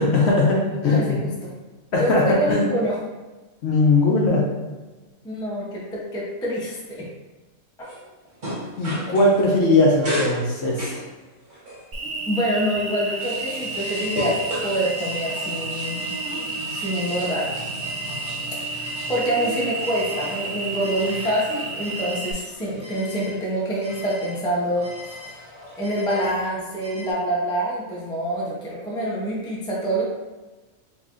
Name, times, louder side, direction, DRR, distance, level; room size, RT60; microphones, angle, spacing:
voice 1, 0.0-1.3 1.9-2.6 3.6-4.4 8.8-11.0, left 2 dB, 60° left, -3 dB, 0.8 m, -19 dB
voice 2, 0.7-1.5 2.0-3.0 5.2-7.1 12.3-16.1 16.7-17.5 18.7-25.1 25.8-30.0, right 1 dB, 5° left, -5 dB, 0.4 m, -26 dB
sound 1, 7.8-9.6 10.0-11.9 12.5-27.1, equal, 40° right, 1.1 m, -35 dB
Cricket, 11.9-22.3, right 3 dB, 70° right, 0.4 m, -31 dB
3.9 x 3.0 x 2.5 m, 1.2 s
omnidirectional pair, 1.4 m